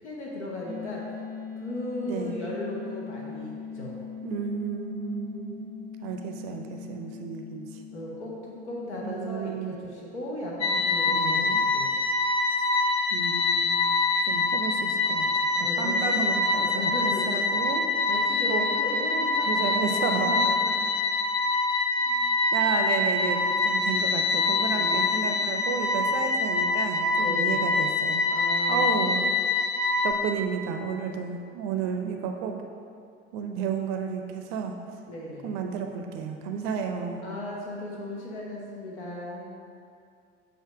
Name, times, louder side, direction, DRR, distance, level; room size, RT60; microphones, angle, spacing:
voice 1, 0.0-1.1 1.6-4.0 7.9-11.9 15.5-16.1 16.6-17.5 18.1-19.5 19.8-20.1 20.4-20.8 24.6-25.1 27.1-27.7 28.3-29.0 35.1-35.6 37.2-39.5, left 1 dB, 75° left, -3 dB, 1.0 m, -36 dB
sound 1, 0.7-11.4, left 6 dB, 15° left, 0.4 m, -41 dB
voice 2, 2.0-2.4 4.2-5.7 6.0-7.8 9.0-9.8 11.1-11.6 13.1-13.8 14.2-15.5 15.8-17.8 18.5-18.6 19.5-20.4 22.1-28.2 28.7-29.3 30.0-32.6 33.3-34.8 35.4-37.3, right 6 dB, 50° right, 4 dB, 0.5 m, -32 dB
sound 2, 10.6-30.1, left 3 dB, 45° left, 1.0 m, -25 dB
7.7 x 2.7 x 4.8 m, 2.4 s
figure-of-eight pair, 70°, 34 cm